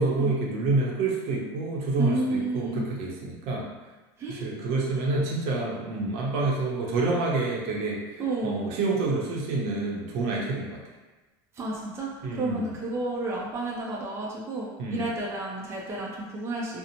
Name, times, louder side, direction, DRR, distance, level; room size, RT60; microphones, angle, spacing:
voice 1, 0.0-3.6 4.3-10.8 12.2-12.7 14.8-15.1, right 3 dB, 65° right, -2 dB, 0.6 m, -28 dB
voice 2, 2.0-2.8 4.2-4.5 8.2-8.7 11.6-16.8, right 2 dB, 25° right, -4 dB, 0.4 m, -31 dB
2.6 x 2.0 x 2.8 m, 1.2 s
supercardioid pair, 135°, 11 cm